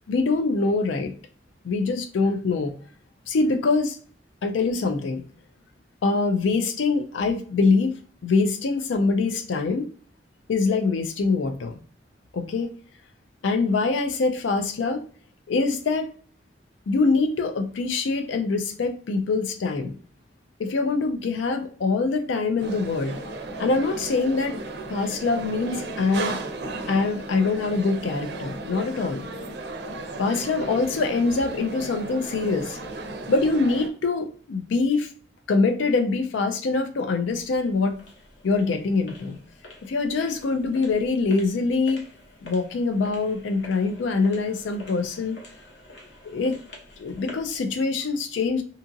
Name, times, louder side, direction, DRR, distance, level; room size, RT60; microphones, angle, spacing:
voice 1, 0.1-1.1 1.6-2.7 3.3-4.0 4.4-5.2 6.0-8.0 8.2-9.9 10.5-11.8 12.3-12.7 13.4-15.0 15.5-16.1 16.9-20.0 20.6-23.2 23.6-24.6 24.9-26.4 26.9-29.3 30.2-32.8 33.3-35.1 35.5-38.0 38.4-39.4 39.8-42.0 42.4-45.4 46.2-46.6 47.0-48.6, left 3 dB, 85° left, 6 dB, 0.4 m, -24 dB
sound 1, 22.6-33.9, right 2 dB, 60° right, 0.5 m, -35 dB
sound 2, 37.3-47.6, left 2 dB, 60° left, 0.8 m, -47 dB
2.8 x 2.5 x 2.5 m, 0.42 s
head